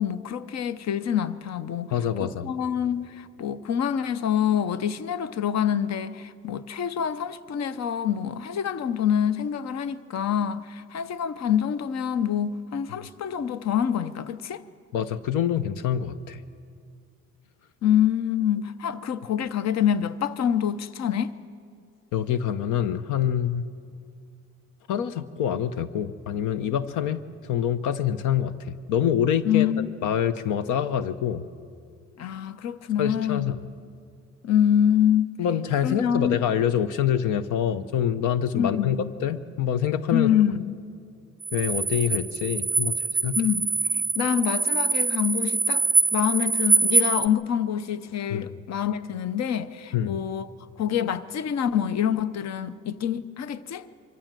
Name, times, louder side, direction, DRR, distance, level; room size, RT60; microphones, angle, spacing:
voice 1, 0.0-1.9 2.2-14.6 17.8-21.3 29.4-30.0 32.2-33.5 34.4-35.4 35.8-36.4 38.5-39.1 40.1-40.8 43.3-45.8 46.1-50.5 50.8-53.9, left 9 dB, 60° left, 0.8 m, -26 dB
voice 2, 1.9-2.5 14.9-16.4 22.1-23.7 24.9-29.7 30.0-31.4 33.0-33.6 35.4-40.3 41.5-43.4 48.3-48.4 49.9-50.2, left 9 dB, 90° left, 0.8 m, -26 dB
sound 1, 41.4-47.3, right 4 dB, 30° right, 0.5 m, -24 dB
24.0 x 14.5 x 7.5 m
cardioid pair, 90°, 30 cm